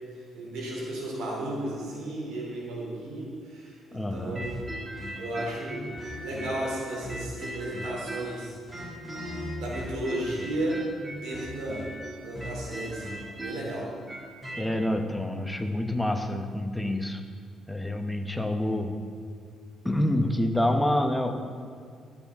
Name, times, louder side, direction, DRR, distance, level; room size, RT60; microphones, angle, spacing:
voice 1, 0.3-4.5 5.2-5.9 6.2-8.5 9.6-10.8 11.2-11.8 12.2-13.2 13.4-13.9, right 1 dB, 90° right, -3 dB, 2.8 m, -34 dB
voice 2, 3.9-4.5 14.6-17.2 17.7-19.0 19.8-21.3, left 1 dB, 5° left, 5 dB, 0.9 m, -27 dB
sound 1, 4.3-8.4 8.7-14.7, equal, 20° right, 2.0 m, -38 dB
12.0 x 8.3 x 3.6 m, 2.2 s
cardioid pair, 90°, 0 cm